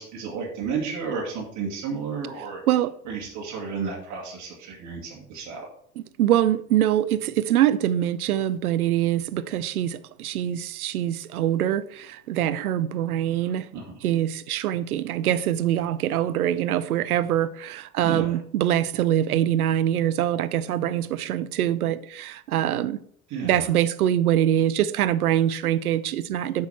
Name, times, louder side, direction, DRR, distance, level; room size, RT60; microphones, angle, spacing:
voice 1, 0.0-2.6 3.1-5.7 13.7-13.9 18.0-18.3 23.3-23.6, right 5 dB, 35° right, 2.3 m, -32 dB
voice 2, 6.0-13.7 14.0-23.0 23.3-26.7, right 11 dB, 65° right, 0.6 m, -24 dB
8.0 x 6.3 x 4.3 m
figure-of-eight pair, 75°, 47 cm